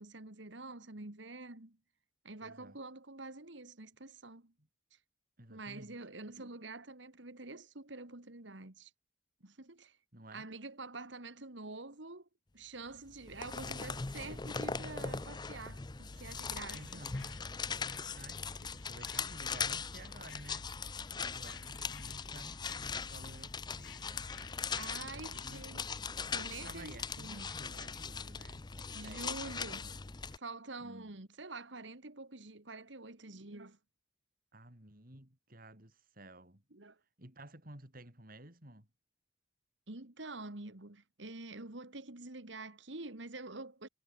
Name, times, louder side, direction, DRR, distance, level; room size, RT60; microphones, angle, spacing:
voice 1, 0.0-1.8 2.2-4.5 4.9-5.0 5.5-8.9 9.4-10.0 10.3-12.3 12.5-17.0 24.8-25.9 26.3-27.4 28.9-30.0 30.3-33.8 36.7-37.0 39.9-43.9, right 3 dB, 70° right, 2.2 m, -47 dB
voice 2, 2.4-2.8 4.6-4.7 5.4-6.0 10.1-10.5 16.7-17.3 18.1-20.7 21.1-24.6 25.0-25.7 26.6-29.4 30.8-31.1 34.5-36.6 37.2-38.9, right 1 dB, 50° right, 5.5 m, -54 dB
sound 1, 13.1-30.4, left 5 dB, 20° left, 0.5 m, -40 dB
sound 2, 16.1-25.6, left 8 dB, 80° left, 6.1 m, -58 dB
head